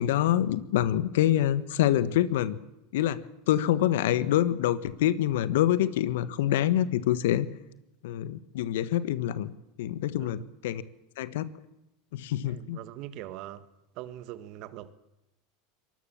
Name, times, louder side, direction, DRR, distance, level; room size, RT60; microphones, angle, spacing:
voice 1, 0.0-2.6 2.9-3.2 3.5-7.5 8.0-9.5 9.8-10.8 11.2-11.5 12.1-12.8, left 12 dB, 70° left, 1.3 m, -26 dB
voice 2, 12.5-13.7 14.0-14.9, right 13 dB, 55° right, 1.7 m, -42 dB
23.5 x 20.0 x 7.2 m
hypercardioid pair, 90°, 0 cm